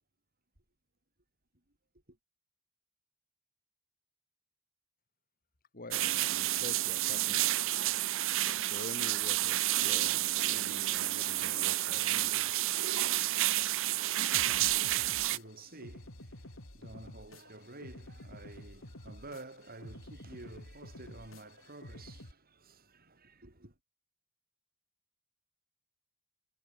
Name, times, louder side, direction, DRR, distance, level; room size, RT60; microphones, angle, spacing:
voice 1, 5.7-7.5 8.6-12.5, left 2 dB, 45° left, 3.0 m, -47 dB
sound 1, 5.9-15.4, right 15 dB, 65° right, 0.7 m, -30 dB
voice 2, 14.1-23.8, right 2 dB, 45° right, 7.2 m, -51 dB
sound 2, 14.3-22.3, left 1 dB, 75° left, 4.8 m, -50 dB
head